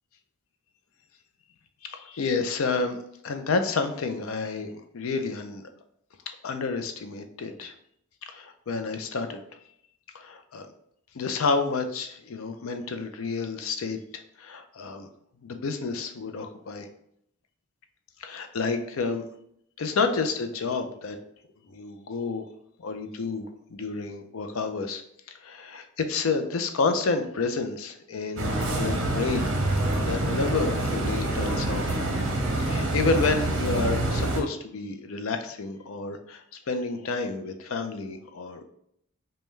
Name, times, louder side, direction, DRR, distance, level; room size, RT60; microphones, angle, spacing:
voice 1, 1.8-5.7 6.3-7.7 8.3-9.4 10.1-10.7 11.1-15.1 15.4-16.9 18.2-19.2 19.8-21.2 21.7-22.5 22.8-25.0 25.3-29.5 30.0-32.0 32.6-38.6, left 4 dB, 75° left, 7 dB, 0.5 m, -30 dB
sound 1, 28.4-34.4, right 1 dB, 60° right, 0.8 m, -26 dB
5.3 x 2.2 x 3.1 m, 0.72 s
head